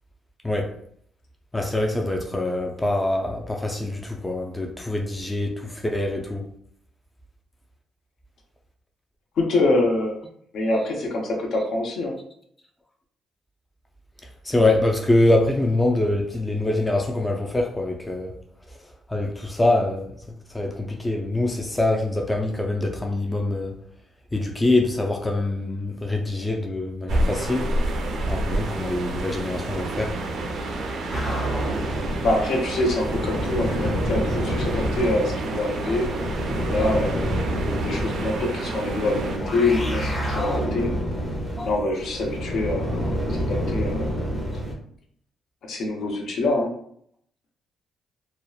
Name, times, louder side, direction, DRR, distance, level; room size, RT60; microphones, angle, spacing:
voice 1, 0.4-0.7 1.5-6.5 14.4-18.3 18.7-23.8 24.3-27.7 28.3-30.2 40.4-40.6 41.6-41.7, left 2 dB, 15° left, 0.3 m, -24 dB
voice 2, 9.4-10.2 10.5-12.2 32.2-36.1 36.7-37.4 37.7-40.9 41.6-44.1 45.7-46.7, left 2 dB, 70° left, 0.6 m, -25 dB
sound 1, 27.1-39.4, right 2 dB, 65° right, 0.4 m, -29 dB
sound 2, 31.1-44.7, equal, 30° left, 0.8 m, -28 dB
2.8 x 2.1 x 2.3 m
cardioid pair, 90°, 0 cm